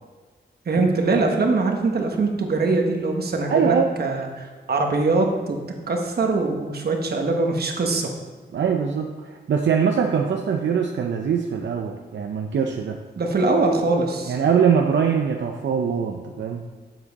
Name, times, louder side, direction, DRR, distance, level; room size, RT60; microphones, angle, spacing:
voice 1, 0.7-5.6 5.9-8.1 13.2-14.4, right 3 dB, 60° right, 2 dB, 1.1 m, -22 dB
voice 2, 3.5-3.9 8.5-13.0 14.3-16.6, right 7 dB, 85° right, 3 dB, 0.6 m, -22 dB
7.5 x 7.4 x 4.0 m, 1.4 s
wide cardioid pair, 155°, 19 cm